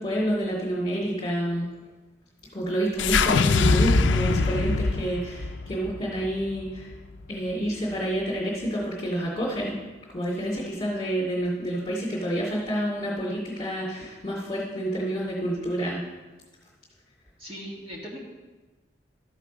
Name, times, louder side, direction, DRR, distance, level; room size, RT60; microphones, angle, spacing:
voice 1, 0.0-1.7 2.5-6.9 7.3-9.8 10.1-16.0, right 1 dB, 25° left, -8 dB, 2.3 m, -28 dB
sound 1, 3.0-7.3, left 4 dB, 85° left, 0.5 m, -23 dB
voice 2, 17.4-18.2, equal, 30° right, -4 dB, 1.8 m, -39 dB
13.0 x 6.5 x 5.1 m, 1.2 s
head